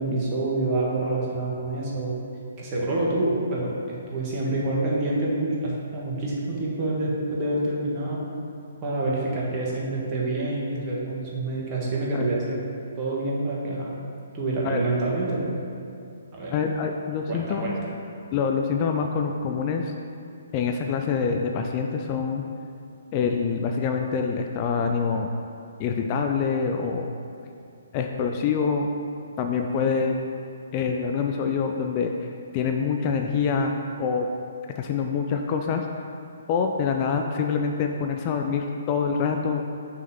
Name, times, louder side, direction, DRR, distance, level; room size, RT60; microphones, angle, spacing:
voice 1, 0.0-2.2 2.6-3.7 4.1-8.2 8.8-12.6 13.0-13.9 14.3-15.5 16.3-16.5 17.3-17.7, right 2 dB, 30° right, -5 dB, 1.4 m, -27 dB
voice 2, 16.5-17.7 18.3-19.9 20.5-22.4 23.1-25.3 25.8-27.1 27.9-28.9 29.4-30.2 30.7-33.7 34.0-34.3 34.8-35.9 36.5-39.6, left 5 dB, 30° left, 3 dB, 0.3 m, -25 dB
6.0 x 3.7 x 5.7 m, 2.5 s
figure-of-eight pair, 130°, 0 cm